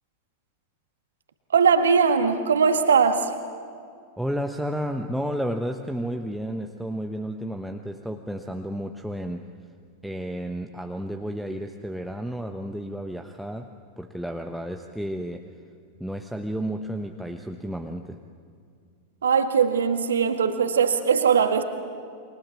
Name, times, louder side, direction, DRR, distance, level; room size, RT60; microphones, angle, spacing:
voice 1, 1.5-3.3 19.2-21.6, right 6 dB, 65° right, 7 dB, 1.9 m, -20 dB
voice 2, 4.2-9.5 10.0-13.7 14.0-15.4 16.0-18.2, equal, ahead, 4 dB, 1.1 m, -32 dB
28.5 x 24.5 x 7.4 m, 2.2 s
figure-of-eight pair, 90°, 0 cm